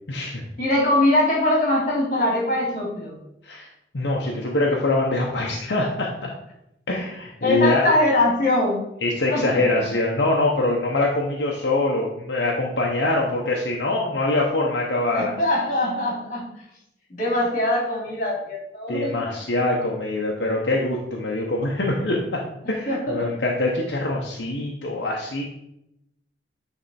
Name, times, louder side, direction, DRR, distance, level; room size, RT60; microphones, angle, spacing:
voice 1, 0.1-0.4 3.4-3.7 3.9-6.3 6.9-7.8 9.0-15.3 18.9-22.4 22.7-25.5, left 2 dB, 75° left, -2 dB, 0.9 m, -24 dB
voice 2, 0.6-3.2 7.4-8.8 9.3-9.5 9.7-9.8 15.1-16.5 17.1-19.1 22.9-23.3, left 1 dB, 45° left, -2 dB, 2.5 m, -22 dB
9.5 x 3.5 x 4.2 m, 0.82 s
head